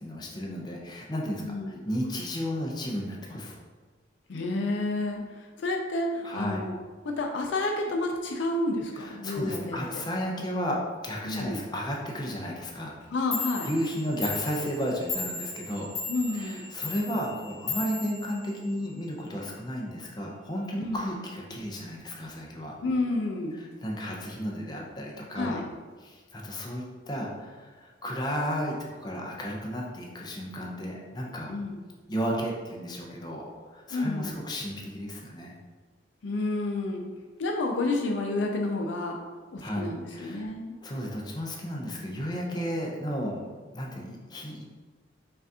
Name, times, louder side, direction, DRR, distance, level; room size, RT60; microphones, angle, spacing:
voice 1, 0.0-3.6 6.2-6.6 8.9-13.0 13.6-15.9 16.3-22.7 23.5-25.6 26.0-31.5 32.1-35.6 39.6-40.5 40.8-43.5 43.7-44.6, equal, 20° left, -2 dB, 0.6 m, -33 dB
voice 2, 1.4-1.8 4.3-6.7 7.0-9.8 11.2-11.6 13.1-13.7 16.1-16.6 20.8-21.0 22.8-23.7 25.3-25.7 31.5-31.8 33.9-34.4 36.2-37.1 37.4-39.2 39.5-40.7, left 2 dB, 65° left, 2 dB, 0.4 m, -30 dB
Clock, 13.0-13.1 13.3-19.0, left 4 dB, 40° left, 1.4 m, -36 dB
5.5 x 2.5 x 2.8 m, 1.4 s
head